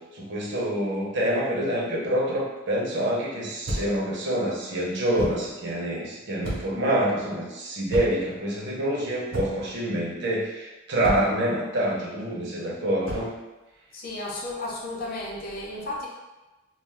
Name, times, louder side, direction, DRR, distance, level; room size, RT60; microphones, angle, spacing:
voice 1, 0.0-13.3, right 1 dB, 60° right, -4 dB, 0.7 m, -26 dB
sound 1, 3.6-4.1 5.2-5.5 6.4-6.8 7.9-8.3 9.3-9.7 11.0-11.4 13.0-13.4, equal, 85° right, 0.9 m, -32 dB
voice 2, 13.9-16.1, left 2 dB, 50° left, -3 dB, 0.5 m, -33 dB
2.4 x 2.2 x 3.3 m, 1.1 s
head